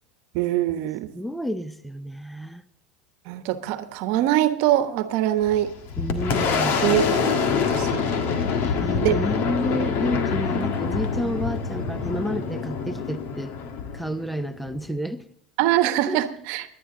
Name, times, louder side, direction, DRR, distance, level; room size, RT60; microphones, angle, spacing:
voice 1, 0.3-1.1 3.3-5.7 6.8-8.0 9.0-9.4 15.6-16.6, right 13 dB, 60° right, 10 dB, 1.1 m, -23 dB
voice 2, 1.1-2.6 6.0-6.9 8.6-13.5 13.9-15.2 16.1-16.2, equal, ahead, 13 dB, 0.8 m, -30 dB
Boom, 5.4-14.8, left 5 dB, 55° left, 1.7 m, -26 dB
21.5 x 10.0 x 3.8 m, 0.67 s
hypercardioid pair, 95°, 5 cm